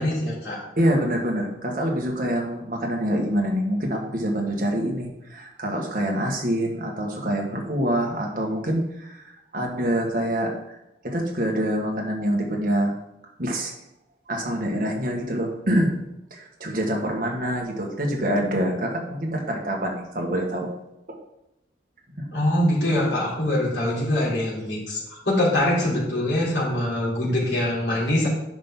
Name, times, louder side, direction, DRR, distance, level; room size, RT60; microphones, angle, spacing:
voice 1, 0.0-0.6 22.3-28.3, left 1 dB, 75° left, -7 dB, 3.6 m, -23 dB
voice 2, 0.8-10.8 11.0-12.9 13.4-13.7 14.3-16.0 16.3-20.7 21.1-21.2 22.2-22.3, equal, 50° right, 0 dB, 1.8 m, -26 dB
10.0 x 6.0 x 3.9 m, 0.86 s
head